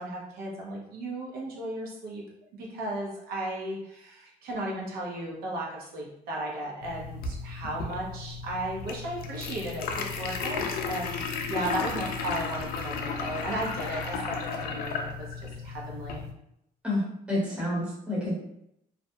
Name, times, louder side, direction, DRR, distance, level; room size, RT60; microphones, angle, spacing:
voice 1, 0.0-2.3 2.5-16.2, right 1 dB, 75° right, -3 dB, 0.7 m, -35 dB
sound 1, 6.8-16.3, left 5 dB, 70° left, 0.4 m, -34 dB
voice 2, 17.3-18.3, left 1 dB, 5° right, -7 dB, 0.8 m, -28 dB
2.5 x 2.2 x 2.6 m, 0.77 s
cardioid pair, 165°, 16 cm